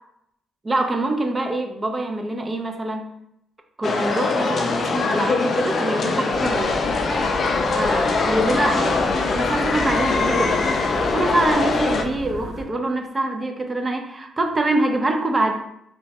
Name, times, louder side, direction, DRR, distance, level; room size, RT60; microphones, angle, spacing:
voice 1, 0.6-3.0 3.8-6.8 7.7-9.0 9.3-10.6 11.1-15.5, right 2 dB, 25° right, 4 dB, 0.4 m, -24 dB
sound 1, 3.8-12.0, left 4 dB, 50° left, 0.3 m, -22 dB
sound 2, 6.3-12.6, right 1 dB, 40° right, 1.0 m, -35 dB
3.0 x 2.1 x 2.7 m, 0.78 s
cardioid pair, 90°, 0 cm